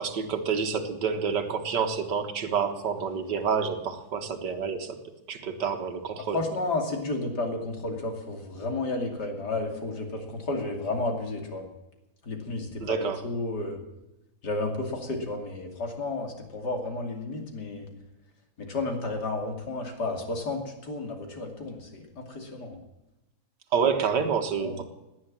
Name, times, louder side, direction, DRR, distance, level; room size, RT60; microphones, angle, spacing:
voice 1, 0.0-5.0 5.3-6.4 12.8-13.2 23.7-24.8, right 6 dB, 60° right, 6 dB, 2.0 m, -28 dB
voice 2, 6.3-11.7 12.2-13.8 14.4-17.9 18.6-22.8 24.6-24.8, left 2 dB, 55° left, 3 dB, 3.2 m, -32 dB
18.0 x 9.8 x 7.5 m, 0.98 s
omnidirectional pair, 2.1 m